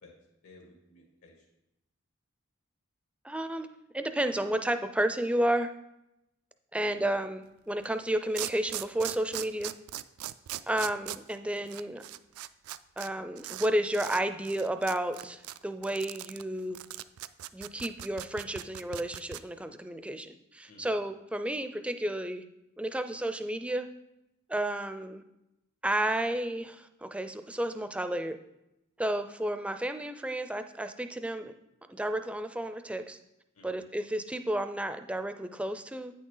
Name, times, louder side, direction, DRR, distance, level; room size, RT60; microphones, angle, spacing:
voice 1, 0.4-1.5 6.7-7.0 20.7-21.0 33.5-33.9, left 1 dB, 80° left, 0 dB, 1.8 m, -56 dB
voice 2, 3.2-3.7 3.9-5.7 6.7-9.7 10.7-12.0 13.0-16.8 17.5-22.4 22.8-23.9 24.5-25.2 25.8-28.4 29.0-31.5 31.9-33.2 33.6-36.1, right 1 dB, 5° right, 9 dB, 0.4 m, -32 dB
sound 1, 7.8-7.9 8.3-13.1 13.4-13.7 13.9-14.2 14.4-19.4, right 14 dB, 85° right, 0.3 m, -39 dB
8.9 x 6.3 x 3.9 m, 0.87 s
head